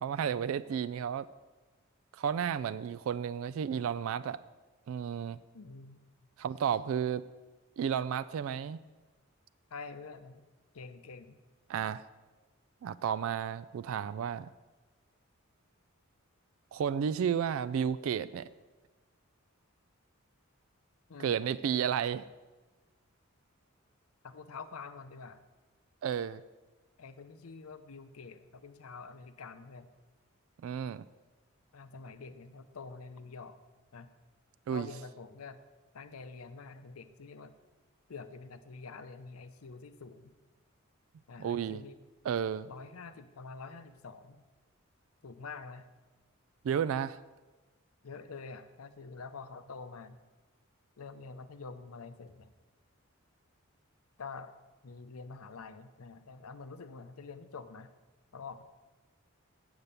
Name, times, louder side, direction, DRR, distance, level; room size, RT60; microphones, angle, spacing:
voice 1, 0.0-1.3 2.1-4.4 4.9-5.4 6.4-7.2 7.8-8.8 11.7-12.0 12.8-14.5 16.7-18.5 21.2-22.3 26.0-26.4 30.6-31.0 34.7-34.9 41.4-41.8 42.3-42.7 46.6-47.2, right 8 dB, 75° right, 16 dB, 0.3 m, -32 dB
voice 2, 5.5-6.0 9.7-10.5 10.7-11.4 21.1-21.4 24.2-25.4 27.0-29.9 31.7-33.6 33.9-34.1 34.7-35.6 35.9-37.5 38.1-40.4 41.3-42.0 42.6-44.4 45.2-45.9 48.0-50.2 51.0-52.5 54.2-54.5 54.8-57.9 58.3-58.6, left 4 dB, 90° left, 11 dB, 0.7 m, -47 dB
7.9 x 7.3 x 6.7 m, 1.2 s
head